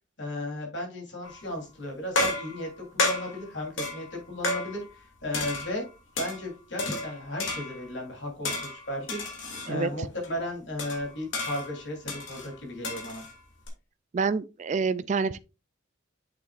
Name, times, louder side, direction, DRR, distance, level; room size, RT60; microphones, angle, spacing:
voice 1, 0.2-5.8 6.2-9.3 9.7-13.2, left 1 dB, 70° left, 3.4 m, -35 dB
sound 1, 1.2-1.6 2.2-5.0 5.3-6.4 6.8-8.0 8.4-9.7 10.2-10.3 10.8-13.7, left 2 dB, 90° left, 2.6 m, -32 dB
voice 2, 14.1-15.4, right 5 dB, 40° right, 0.3 m, -27 dB
7.8 x 7.0 x 2.5 m
head